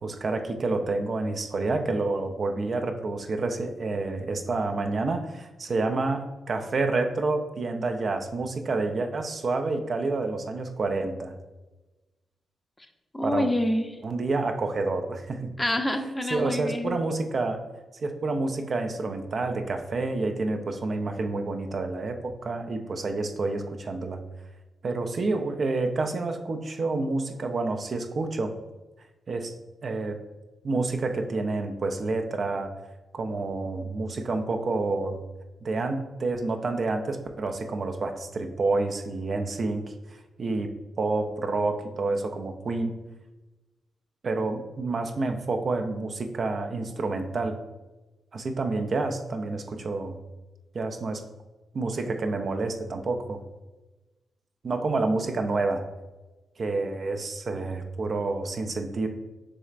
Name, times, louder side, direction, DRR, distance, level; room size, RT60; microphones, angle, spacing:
voice 1, 0.0-11.3 13.2-13.5 14.0-15.5 16.3-17.6 18.0-24.2 24.8-28.5 29.3-29.5 29.8-30.2 30.6-32.7 33.1-35.2 35.6-39.8 40.4-40.7 41.0-43.0 44.2-47.6 48.3-50.2 50.7-51.2 51.7-53.4 54.6-55.8 56.6-59.1, right 3 dB, 55° right, 5 dB, 0.5 m, -28 dB
voice 2, 13.1-14.0 15.6-17.0, left 1 dB, 20° left, 6 dB, 0.6 m, -27 dB
6.2 x 3.1 x 2.4 m, 1.1 s
hypercardioid pair, 40°, 0 cm